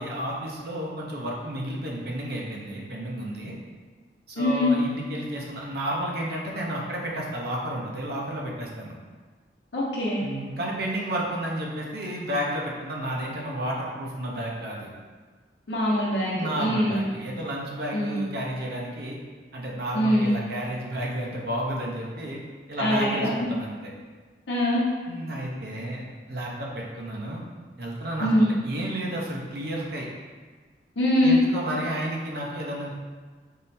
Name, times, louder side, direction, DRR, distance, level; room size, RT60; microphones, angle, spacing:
voice 1, 0.0-3.6 4.3-8.9 10.2-14.9 16.3-19.2 19.5-22.4 22.7-23.9 25.1-26.0 26.3-27.4 27.8-30.1 31.2-32.9, right 1 dB, 60° right, -2 dB, 0.7 m, -31 dB
voice 2, 4.4-4.7 9.7-10.2 15.7-17.1 17.9-18.3 19.9-20.4 22.8-23.3 24.5-24.8 28.2-28.5 31.0-31.4, left 1 dB, 90° left, -6 dB, 0.8 m, -23 dB
3.7 x 3.2 x 4.1 m, 1.4 s
head